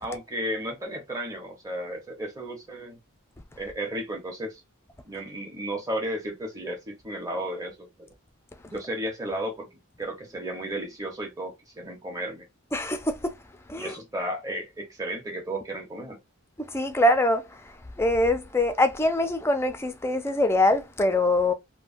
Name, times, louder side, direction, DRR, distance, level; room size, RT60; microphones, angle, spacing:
voice 1, 0.0-3.0 3.6-4.6 5.0-8.1 8.6-12.5 13.8-16.2, right 1 dB, 15° right, 0.9 m, -34 dB
voice 2, 12.7-13.3 13.7-13.9 16.6-21.5, left 1 dB, 10° left, 0.4 m, -24 dB
3.2 x 2.2 x 2.5 m
head